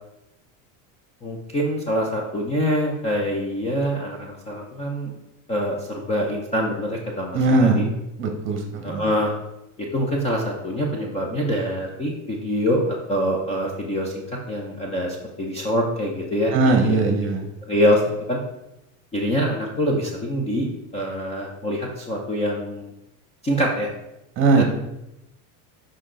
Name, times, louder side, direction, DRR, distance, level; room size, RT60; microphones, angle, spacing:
voice 1, 1.2-5.1 5.5-7.8 8.8-9.3 9.9-16.6 16.8-17.0 17.7-18.4 19.1-20.7 20.9-22.9 23.4-23.9 24.6-24.7, equal, 15° left, -1 dB, 0.6 m, -25 dB
voice 2, 7.3-7.9 8.2-9.1 16.5-17.4 24.4-24.6, right 3 dB, 30° right, 4 dB, 1.1 m, -19 dB
6.3 x 5.2 x 3.8 m, 0.89 s
cardioid pair, 160°, 41 cm